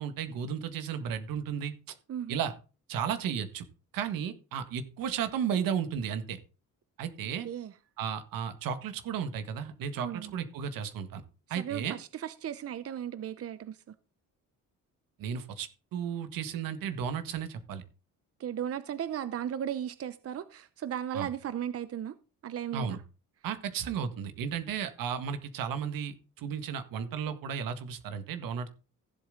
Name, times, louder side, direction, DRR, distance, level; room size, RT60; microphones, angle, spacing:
voice 1, 0.0-1.7 2.3-2.5 2.9-3.6 3.9-6.4 7.0-7.5 8.0-11.2 11.5-12.0 15.2-17.8 21.1-21.3 22.7-23.0 23.4-28.7, right 7 dB, 80° right, 1.8 m, -34 dB
voice 2, 2.1-2.4 7.4-7.7 10.0-10.3 11.5-13.9 18.4-22.1 22.4-23.0, right 10 dB, 45° right, 0.8 m, -36 dB
15.5 x 7.7 x 3.8 m
cardioid pair, 110°, 33 cm